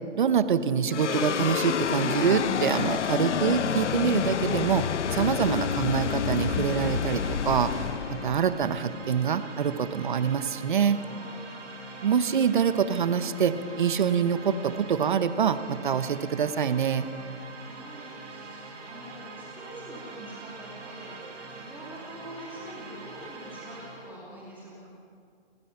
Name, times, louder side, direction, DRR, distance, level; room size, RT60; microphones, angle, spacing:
voice 1, 0.1-7.7 8.1-11.0 12.0-17.1, right 7 dB, 45° right, 12 dB, 1.0 m, -25 dB
sound 1, 0.9-9.4, left 7 dB, 80° left, 0.8 m, -29 dB
sound 2, 6.2-24.2, right 3 dB, 80° right, 6.6 m, -44 dB
voice 2, 10.9-11.7 17.0-24.9, right 1 dB, 5° right, -6 dB, 2.5 m, -46 dB
29.5 x 15.0 x 5.8 m, 2.2 s
hypercardioid pair, 170°, 35 cm